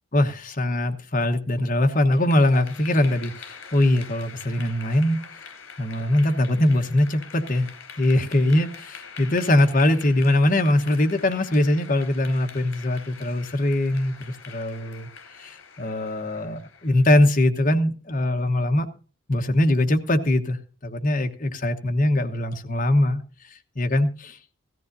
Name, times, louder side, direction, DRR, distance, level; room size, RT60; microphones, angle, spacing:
voice 1, 0.1-5.4 5.8-7.7 8.0-18.9 19.3-24.4, left 1 dB, 40° left, 1.1 m, -22 dB
Clapping / Applause, 1.9-17.2, left 6 dB, 70° left, 3.4 m, -44 dB
17.0 x 14.0 x 2.7 m
head